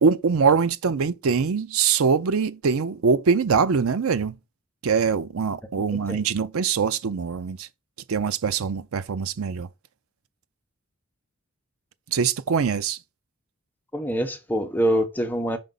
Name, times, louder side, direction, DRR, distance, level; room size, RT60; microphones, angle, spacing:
voice 1, 0.0-4.4 4.8-7.7 8.1-9.7 12.1-13.0, right 5 dB, 90° right, 0.5 m, -23 dB
voice 2, 13.9-15.6, equal, 10° left, 1.0 m, -24 dB
5.9 x 5.2 x 3.9 m
head